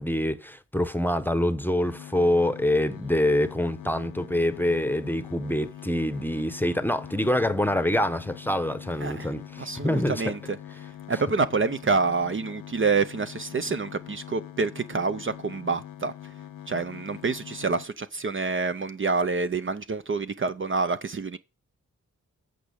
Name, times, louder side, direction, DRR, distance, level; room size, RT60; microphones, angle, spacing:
voice 1, 0.0-10.3, left 1 dB, 5° left, 0.9 m, -25 dB
sound 1, 1.8-17.9, left 12 dB, 80° left, 0.9 m, -43 dB
voice 2, 9.0-9.3 9.6-10.6 11.1-16.1 16.7-21.4, right 4 dB, 40° right, 0.6 m, -27 dB
8.4 x 5.0 x 7.0 m
cardioid pair, 60°, 32 cm